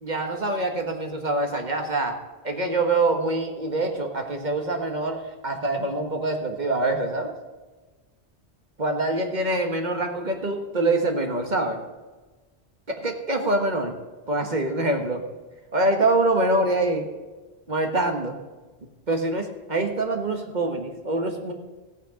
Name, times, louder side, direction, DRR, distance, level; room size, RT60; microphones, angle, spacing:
voice 1, 0.0-2.2 2.4-7.4 8.8-11.8 12.9-13.9 14.3-15.3 15.7-17.1 17.7-18.4 19.1-21.5, right 2 dB, 40° right, 4 dB, 1.5 m, -25 dB
15.0 x 9.0 x 5.0 m, 1.3 s
omnidirectional pair, 1.1 m